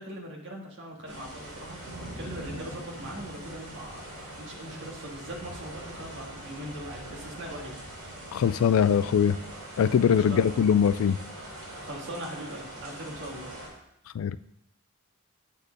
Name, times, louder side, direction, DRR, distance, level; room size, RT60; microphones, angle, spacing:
voice 1, 0.0-7.7 10.1-10.7 11.8-13.5, right 1 dB, 55° right, 0 dB, 1.7 m, -41 dB
sound 1, 1.1-13.7, right 1 dB, 85° right, 3.2 m, -42 dB
voice 2, 8.3-9.4 9.8-11.2 14.1-14.4, left 7 dB, 70° left, 16 dB, 0.3 m, -22 dB
8.3 x 4.4 x 5.2 m, 0.80 s
head